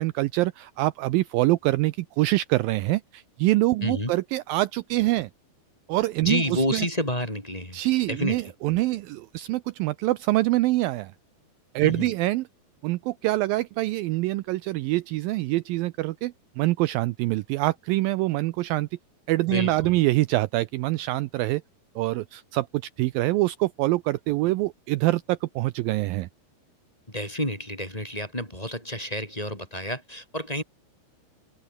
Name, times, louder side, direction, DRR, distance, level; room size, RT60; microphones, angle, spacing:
voice 1, 0.0-5.3 5.9-6.9 7.7-11.1 11.8-12.4 12.8-18.9 19.3-21.6 22.0-22.7 23.0-26.3, right 18 dB, 80° right, 2.2 m, -25 dB
voice 2, 3.8-4.1 6.2-7.8 8.1-8.4 11.8-12.1 19.5-20.0 27.1-30.6, left 1 dB, 10° left, 4.3 m, -29 dB
omnidirectional pair, 4.5 m